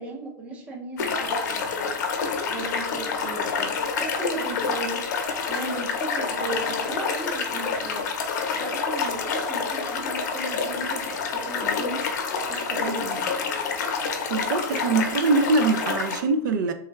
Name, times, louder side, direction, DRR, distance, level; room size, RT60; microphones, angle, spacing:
voice 1, 0.0-1.9 2.5-5.1 5.5-12.1 12.5-13.5, right 2 dB, 15° right, 0.5 m, -36 dB
sound 1, 1.0-16.2, left 5 dB, 70° left, 0.6 m, -28 dB
voice 2, 14.3-16.7, right 3 dB, 85° right, 0.4 m, -23 dB
3.3 x 2.3 x 3.1 m
supercardioid pair, 175°, 10 cm